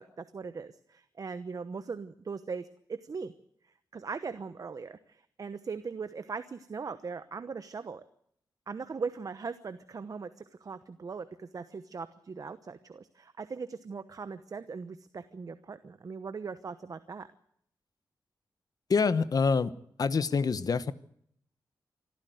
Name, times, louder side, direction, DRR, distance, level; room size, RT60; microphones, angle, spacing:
voice 1, 0.0-3.3 3.6-8.0 8.7-17.3, right 5 dB, 50° right, 11 dB, 1.0 m, -40 dB
voice 2, 18.9-19.7 20.0-20.9, left 5 dB, 55° left, 14 dB, 1.1 m, -26 dB
25.5 x 14.0 x 7.9 m, 0.69 s
wide cardioid pair, 100°, 8 cm